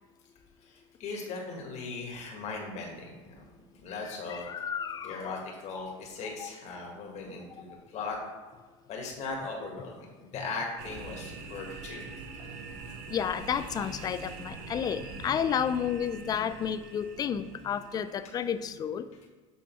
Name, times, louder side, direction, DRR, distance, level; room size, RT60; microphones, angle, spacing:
voice 1, 0.6-3.4 3.7-4.5 5.0-8.2 8.9-12.1, left 3 dB, 45° left, 0 dB, 1.8 m, -38 dB
voice 2, 4.3-5.3 5.8-5.9 6.4-6.5 6.8-6.9 13.1-19.1, left 8 dB, 25° left, 12 dB, 0.3 m, -31 dB
sound 1, 10.8-18.7, right 4 dB, 65° right, 1.0 m, -44 dB
7.6 x 3.6 x 4.5 m, 1.4 s
supercardioid pair, 115°, 17 cm